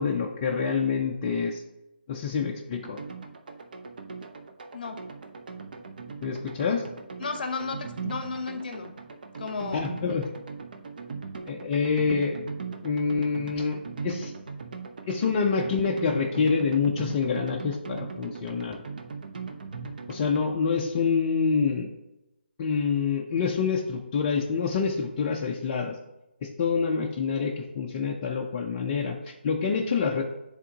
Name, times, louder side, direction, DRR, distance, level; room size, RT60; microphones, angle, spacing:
voice 1, 0.0-1.6 2.1-3.0 6.2-6.8 9.7-10.3 11.5-12.4 12.8-14.3 15.1-18.8 20.1-21.9 22.6-25.9 26.4-30.2, left 5 dB, 25° left, -1 dB, 0.4 m, -27 dB
sound 1, 2.8-20.5, right 5 dB, 50° right, 0.6 m, -39 dB
voice 2, 7.2-8.9 9.4-10.2, left 4 dB, 50° left, 6 dB, 0.8 m, -34 dB
10.0 x 3.6 x 2.8 m, 0.93 s
hypercardioid pair, 165°, 6 cm